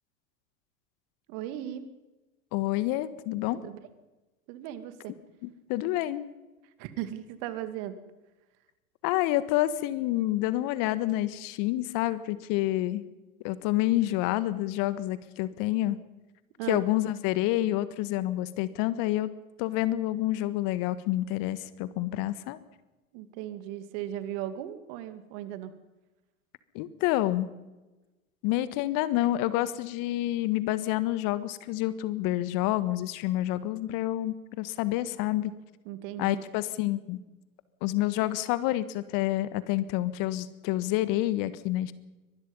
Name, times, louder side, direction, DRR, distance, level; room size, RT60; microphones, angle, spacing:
voice 1, 1.3-1.8 3.5-3.8 4.5-5.1 6.8-8.0 16.6-16.8 23.1-25.7 35.9-36.4, right 12 dB, 55° right, 11 dB, 2.6 m, -37 dB
voice 2, 2.5-3.6 5.4-6.3 9.0-13.0 13.4-16.0 16.7-19.3 19.6-22.6 26.7-27.5 28.4-35.5 36.2-37.2 37.8-41.9, left 15 dB, 50° left, 15 dB, 1.6 m, -28 dB
24.0 x 19.5 x 5.5 m, 1.1 s
hypercardioid pair, 90°, 42 cm